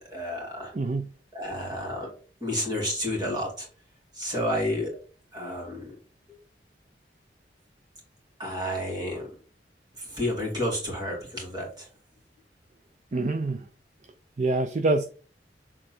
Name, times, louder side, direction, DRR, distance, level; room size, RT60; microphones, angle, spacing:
voice 1, 0.1-0.7 1.3-2.1 2.4-3.7 4.1-5.0 5.3-5.9 6.3-6.4 8.4-9.3 10.0-11.9, left 1 dB, 25° right, 2.5 m, -30 dB
voice 2, 0.7-1.1 13.1-13.7 14.4-15.0, right 2 dB, 40° right, 0.5 m, -25 dB
6.8 x 3.8 x 4.4 m
head